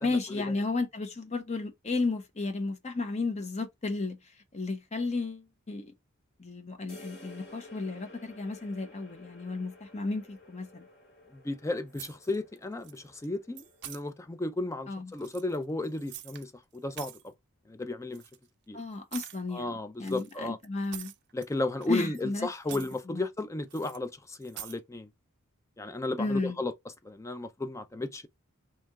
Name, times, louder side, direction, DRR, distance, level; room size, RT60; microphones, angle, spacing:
voice 1, 0.0-4.2 4.5-5.9 6.4-10.9 14.9-15.1 18.7-21.1 21.9-23.2 26.2-26.6, left 3 dB, 30° left, 0.7 m, -33 dB
sound 1, 6.9-14.4, left 2 dB, 45° left, 2.4 m, -53 dB
voice 2, 11.3-17.3 17.7-18.2 18.7-18.8 19.5-20.6 21.3-25.1 25.8-26.7 27.0-28.3, left 2 dB, 15° left, 0.3 m, -34 dB
sound 2, 11.9-12.6 12.8-13.3 13.6-14.0 15.1-16.5 16.7-17.3 18.1-18.4 19.1-19.4 20.0-21.5 21.8-22.3 22.6-23.0 23.7-24.0 24.4-24.8, right 13 dB, 50° right, 0.4 m, -45 dB
3.3 x 2.8 x 3.5 m
head